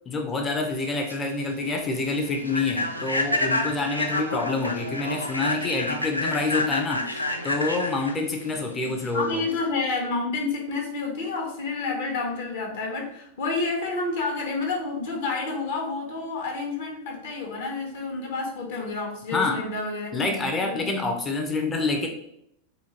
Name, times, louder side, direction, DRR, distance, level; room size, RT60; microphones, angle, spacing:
voice 1, 0.1-9.4 19.3-19.7 20.1-22.1, left 3 dB, 20° left, 3 dB, 0.4 m, -27 dB
Human voice / Train, 0.8-9.7, left 1 dB, 85° left, 0.3 m, -29 dB
voice 2, 8.8-20.9, left 3 dB, 55° left, 1 dB, 0.8 m, -29 dB
3.7 x 2.4 x 2.8 m, 0.74 s
figure-of-eight pair, 90°, 0 cm